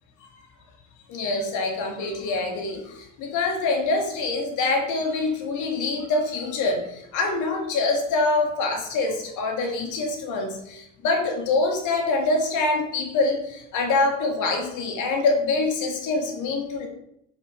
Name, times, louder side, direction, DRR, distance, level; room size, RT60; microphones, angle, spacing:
voice 1, 1.1-16.9, left 3 dB, 50° left, 2 dB, 1.8 m, -25 dB
6.7 x 5.7 x 3.2 m, 0.76 s
figure-of-eight pair, 65°, 39 cm